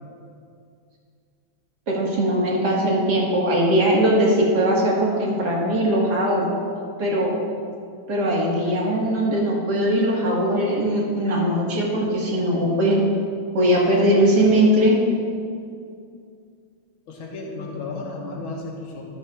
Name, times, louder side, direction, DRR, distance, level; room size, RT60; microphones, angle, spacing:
voice 1, 1.9-6.5 7.0-7.4 8.1-13.0 13.5-15.0, right 1 dB, 55° right, -3 dB, 2.1 m, -20 dB
voice 2, 17.1-19.0, left 3 dB, 90° left, -1 dB, 2.1 m, -33 dB
13.0 x 10.5 x 2.3 m, 2.3 s
omnidirectional pair, 2.2 m